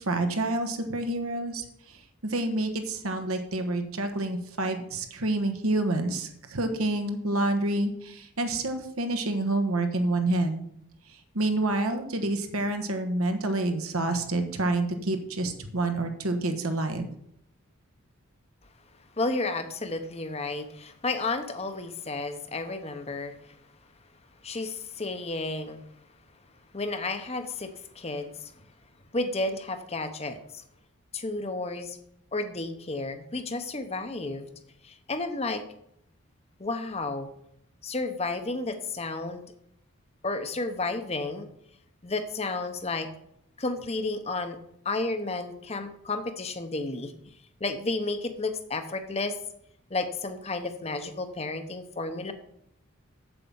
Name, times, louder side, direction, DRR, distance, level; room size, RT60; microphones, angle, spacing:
voice 1, 0.0-10.7 11.3-17.1, right 2 dB, 80° right, 6 dB, 1.3 m, -28 dB
voice 2, 19.2-23.3 24.4-25.8 26.7-28.5 29.1-30.6 31.1-32.0 32.3-34.5 34.8-35.6 36.6-37.3 37.8-39.5 40.2-41.5 42.0-43.1 43.6-44.6 44.8-47.1 47.6-49.4 49.9-52.3, left 2 dB, 30° left, 8 dB, 0.8 m, -32 dB
7.8 x 7.5 x 5.5 m, 0.74 s
head